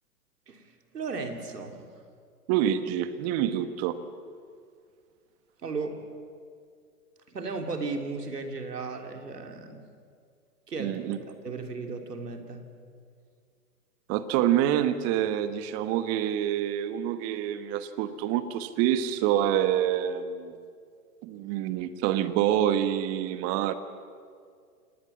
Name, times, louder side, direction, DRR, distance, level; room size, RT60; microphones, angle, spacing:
voice 1, 0.5-1.8 5.6-6.0 7.3-9.8 10.7-11.0 11.3-12.6, right 4 dB, 80° right, 5 dB, 3.3 m, -35 dB
voice 2, 2.5-4.0 10.8-11.2 14.1-20.5 21.2-23.7, right 11 dB, 30° right, 11 dB, 1.4 m, -27 dB
27.5 x 19.5 x 7.3 m, 2.2 s
hypercardioid pair, 120°, 47 cm